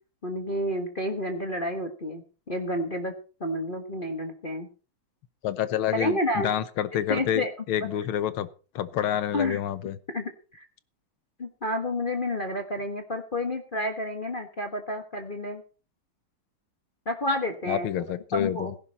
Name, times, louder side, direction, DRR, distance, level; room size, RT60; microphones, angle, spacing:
voice 1, 0.2-3.1 3.4-4.7 5.9-6.5 7.1-7.5 9.3-9.6 10.1-10.6 11.4-15.6 17.0-17.9 18.3-18.7, left 1 dB, 30° left, 4 dB, 1.3 m, -30 dB
voice 2, 5.4-8.5 8.8-10.0 17.7-18.7, left 10 dB, 85° left, 14 dB, 1.8 m, -28 dB
17.0 x 10.5 x 4.2 m, 0.36 s
omnidirectional pair, 2.3 m